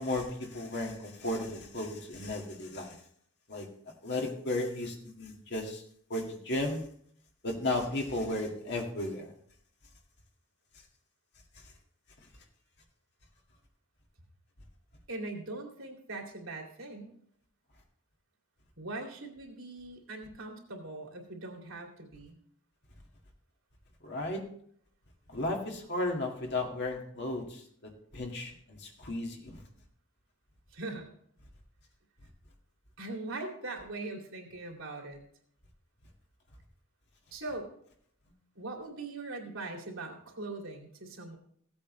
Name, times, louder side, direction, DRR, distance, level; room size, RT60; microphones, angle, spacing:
voice 1, 0.0-3.0 3.5-3.7 4.0-5.8 6.1-6.8 7.4-9.3 24.0-24.4 25.3-29.6, left 2 dB, 55° left, 1 dB, 2.0 m, -34 dB
voice 2, 15.1-17.1 18.8-22.4 30.7-31.1 33.0-35.2 37.3-37.7 38.5-41.4, right 2 dB, 75° right, 1 dB, 2.6 m, -41 dB
16.0 x 8.4 x 3.2 m, 0.64 s
head